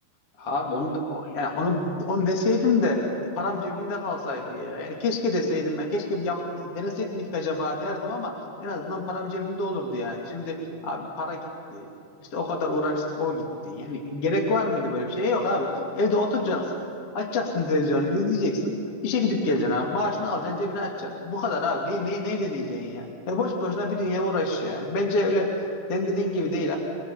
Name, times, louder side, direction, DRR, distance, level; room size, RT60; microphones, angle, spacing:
voice 1, 0.4-10.6 10.8-11.4 11.7-11.9 12.2-16.8 17.1-18.7 19.0-25.5 25.9-26.8, left 2 dB, 35° left, 1 dB, 2.8 m, -27 dB
29.5 x 22.0 x 7.3 m, 2.8 s
omnidirectional pair, 5.7 m